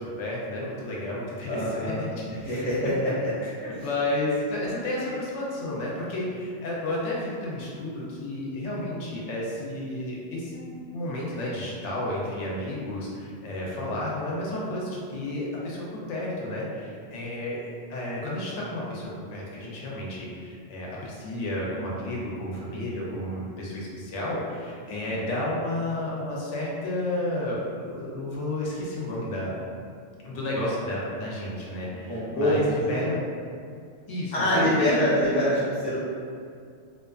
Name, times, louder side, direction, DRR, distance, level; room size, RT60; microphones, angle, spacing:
voice 1, 0.0-2.1 2.4-2.9 3.4-29.6 30.2-33.2 34.1-35.2, left 1 dB, 90° left, -5 dB, 0.9 m, -32 dB
voice 2, 1.5-2.0 2.3-3.1 3.7-3.8 13.7-13.9 24.9-25.2 32.1-32.6 32.9-33.1 34.3-36.0, left 1 dB, 10° left, -10 dB, 0.3 m, -25 dB
2.4 x 2.3 x 2.3 m, 2.3 s
omnidirectional pair, 1.2 m